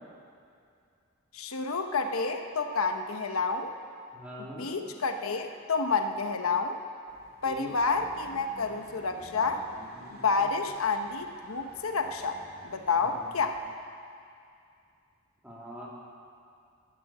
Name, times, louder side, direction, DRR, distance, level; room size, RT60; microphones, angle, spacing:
voice 1, 1.3-3.7 4.4-6.8 7.4-9.6 10.2-12.4 12.6-13.6, left 4 dB, 80° left, 6 dB, 1.0 m, -29 dB
voice 2, 4.1-4.7 7.4-7.7 13.0-13.2 15.4-15.9, equal, 5° right, -6 dB, 2.9 m, -42 dB
sound 1, 7.1-13.7, right 1 dB, 45° right, 3.0 m, -52 dB
13.5 x 12.5 x 8.4 m, 2.4 s
head